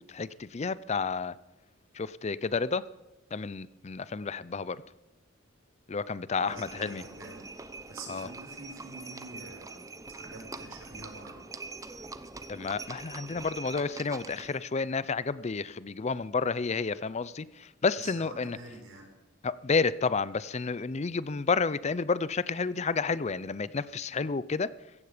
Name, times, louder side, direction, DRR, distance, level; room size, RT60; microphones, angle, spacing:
voice 1, 0.0-1.3 1.9-2.8 3.3-4.8 5.9-7.0 8.1-8.3 12.5-18.6 19.4-24.7, left 4 dB, 35° left, 18 dB, 0.5 m, -30 dB
voice 2, 6.4-7.4 7.9-11.4 18.0-19.1, right 2 dB, 75° right, 2 dB, 5.1 m, -46 dB
Livestock farm animals working animals, 6.5-14.6, right 3 dB, 15° right, 0.7 m, -44 dB
16.0 x 14.5 x 5.0 m, 1.1 s
head